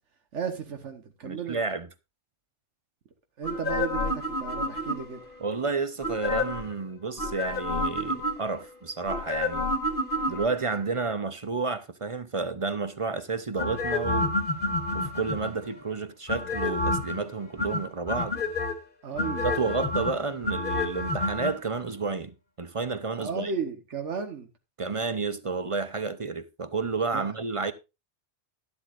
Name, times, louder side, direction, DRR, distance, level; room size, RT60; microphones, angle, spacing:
voice 1, 0.3-1.6 3.4-5.2 19.0-19.5 23.2-24.5 27.1-27.2, right 6 dB, 85° right, 1.5 m, -34 dB
voice 2, 1.2-1.9 5.4-9.7 10.3-14.3 14.9-18.4 19.4-23.5 24.8-27.7, right 4 dB, 35° right, 0.6 m, -31 dB
sound 1, 3.4-5.3 6.0-6.7 7.2-8.6 9.1-10.8 13.6-15.7 16.3-17.2 17.6-18.7 19.2-21.5 21.8-21.9, left 2 dB, 45° left, 2.2 m, -29 dB
12.0 x 12.0 x 2.5 m
omnidirectional pair, 1.2 m